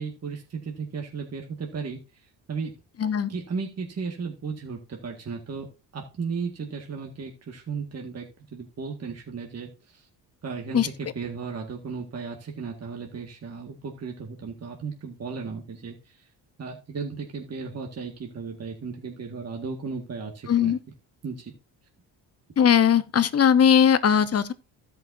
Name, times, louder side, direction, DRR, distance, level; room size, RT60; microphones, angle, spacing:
voice 1, 0.0-2.0 2.5-2.7 3.3-5.7 5.9-8.3 8.5-9.7 10.4-16.0 16.6-20.7 21.2-21.5, right 5 dB, 40° right, 1.9 m, -35 dB
voice 2, 3.0-3.3 10.7-10.9 20.5-20.8 22.6-24.5, left 8 dB, 40° left, 1.0 m, -19 dB
15.5 x 5.7 x 2.7 m
cardioid pair, 75°, 39 cm